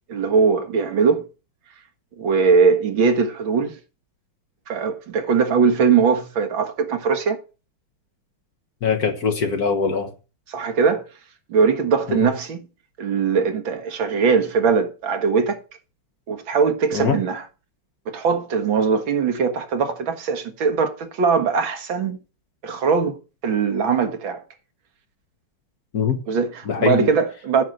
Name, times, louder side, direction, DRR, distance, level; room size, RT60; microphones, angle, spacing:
voice 1, 0.1-1.2 2.2-3.8 4.7-7.4 10.5-11.0 11.5-12.6 13.0-15.6 16.3-17.4 18.1-22.2 22.6-23.2 23.4-24.4 26.3-27.6, right 5 dB, 70° right, 2.1 m, -20 dB
voice 2, 8.8-10.1 12.1-12.3 16.9-17.2 25.9-26.2 26.6-27.1, left 6 dB, 50° left, 1.6 m, -22 dB
9.4 x 5.8 x 7.7 m
omnidirectional pair, 2.3 m